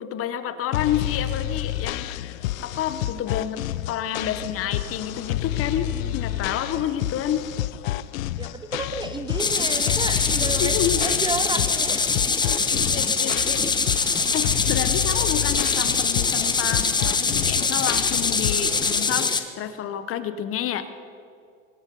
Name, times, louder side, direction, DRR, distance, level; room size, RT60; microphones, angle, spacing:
voice 1, 0.0-3.6 3.9-7.5 10.6-11.1 12.3-20.9, left 10 dB, 35° left, 12 dB, 1.0 m, -29 dB
sound 1, 0.7-19.0, left 14 dB, 85° left, 0.7 m, -30 dB
voice 2, 8.4-10.7 11.0-12.2, right 3 dB, 10° right, 10 dB, 0.6 m, -32 dB
sound 2, 9.4-19.4, left 4 dB, 10° left, 0.9 m, -23 dB
23.0 x 11.5 x 5.4 m, 2.4 s
supercardioid pair, 125°, 40 cm